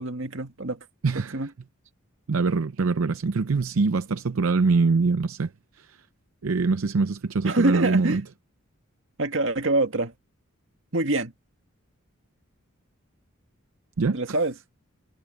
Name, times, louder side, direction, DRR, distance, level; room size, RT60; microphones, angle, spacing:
voice 1, 0.0-0.9 1.1-1.5 7.4-8.2 9.2-10.1 10.9-11.3 14.1-14.5, right 2 dB, 65° right, 2.0 m, -25 dB
voice 2, 1.0-1.3 2.3-5.5 6.4-8.2 14.0-14.2, right 4 dB, 80° right, 0.6 m, -23 dB
head